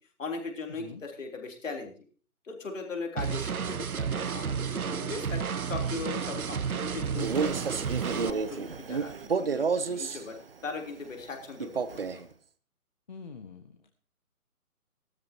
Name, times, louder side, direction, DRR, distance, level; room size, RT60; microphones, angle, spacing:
voice 1, 0.2-1.9 2.4-7.7 8.0-9.1 9.4-10.4 10.6-12.2, left 4 dB, 55° left, 2 dB, 3.7 m, -39 dB
sound 1, 3.2-8.3, right 6 dB, 70° right, 0.8 m, -32 dB
Male speech man speaking, 7.1-10.2 11.6-12.3, right 5 dB, 40° right, 0.7 m, -30 dB
voice 2, 13.1-14.0, left 5 dB, 30° left, 6 dB, 0.9 m, -45 dB
18.0 x 13.0 x 2.9 m, 0.41 s
figure-of-eight pair, 150°, 45 cm